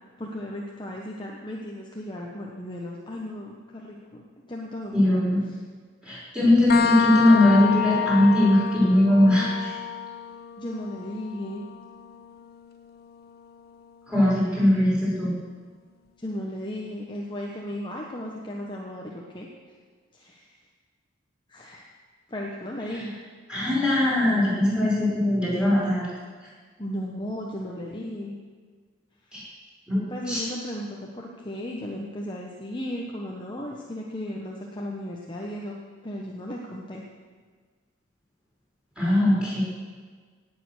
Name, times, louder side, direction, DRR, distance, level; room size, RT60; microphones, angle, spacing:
voice 1, 0.2-5.6 10.6-11.7 16.2-19.5 20.1-20.5 21.5-21.8 22.3-23.1 26.8-28.3 29.3-29.4 30.1-37.0, left 1 dB, 20° left, -2 dB, 1.1 m, -35 dB
voice 2, 4.9-5.4 6.0-9.8 14.1-15.3 23.5-26.1 29.3-29.4 29.9-30.0 30.3-30.4 39.0-39.6, left 1 dB, 5° right, -8 dB, 5.5 m, -20 dB
sound 1, 6.7-14.1, left 8 dB, 45° left, 0.7 m, -30 dB
18.0 x 8.6 x 6.6 m, 1.6 s
head